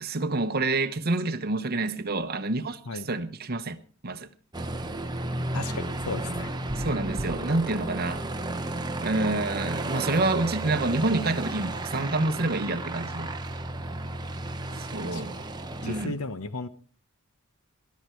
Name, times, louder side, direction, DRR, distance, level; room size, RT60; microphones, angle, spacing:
voice 1, 0.0-3.8 4.0-4.3 6.8-8.2 9.0-13.3 14.9-15.4 15.8-16.2, right 2 dB, 45° right, 1.1 m, -28 dB
Aircraft, 4.5-16.1, right 2 dB, 20° right, 1.1 m, -33 dB
voice 2, 5.5-6.5 15.1-15.2 15.8-16.7, left 3 dB, 85° left, 1.0 m, -34 dB
18.5 x 11.5 x 4.6 m
head